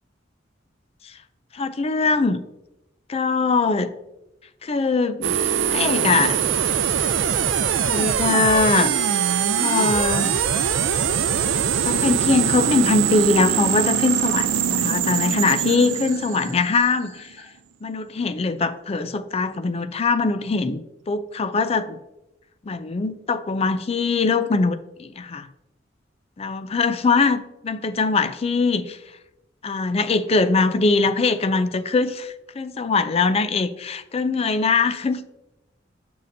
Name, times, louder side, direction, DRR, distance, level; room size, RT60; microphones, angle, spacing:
voice 1, 1.5-2.4 3.1-3.9 4.6-5.4 5.7-6.4 7.8-9.0 9.5-10.3 11.8-17.3 17.8-22.0 22.6-25.5 26.4-29.0 29.6-35.2, left 4 dB, 35° left, 11 dB, 0.4 m, -22 dB
sound 1, 5.2-17.2, right 8 dB, 90° right, 0.5 m, -22 dB
sound 2, 12.5-17.4, left 3 dB, 60° left, 2.4 m, -44 dB
6.6 x 6.5 x 2.7 m, 0.92 s
head